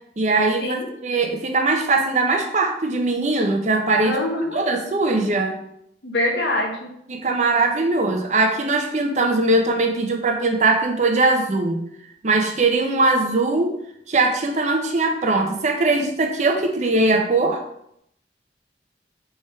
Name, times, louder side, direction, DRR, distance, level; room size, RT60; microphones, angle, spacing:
voice 1, 0.2-4.2 4.5-5.6 7.1-11.8 12.2-13.7 14.1-17.6, right 2 dB, 40° right, 3 dB, 0.6 m, -20 dB
voice 2, 4.0-4.6 6.0-6.9, left 1 dB, 75° left, 1 dB, 1.0 m, -24 dB
3.5 x 3.3 x 4.3 m, 0.73 s
head